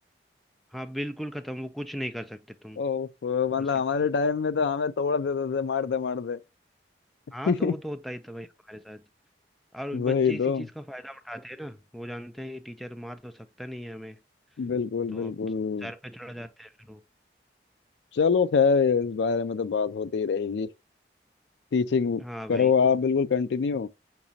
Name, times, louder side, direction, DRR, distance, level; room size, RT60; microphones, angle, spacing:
voice 1, 0.7-2.8 3.6-4.0 7.3-9.0 9.7-14.2 15.1-15.3 15.8-17.0 22.2-22.7, equal, ahead, 0.3 m, -38 dB
voice 2, 2.8-6.4 7.5-7.7 9.9-10.7 14.6-15.9 18.1-20.7 21.7-22.2 22.5-23.9, left 5 dB, 85° left, 0.4 m, -25 dB
6.0 x 3.0 x 2.7 m
head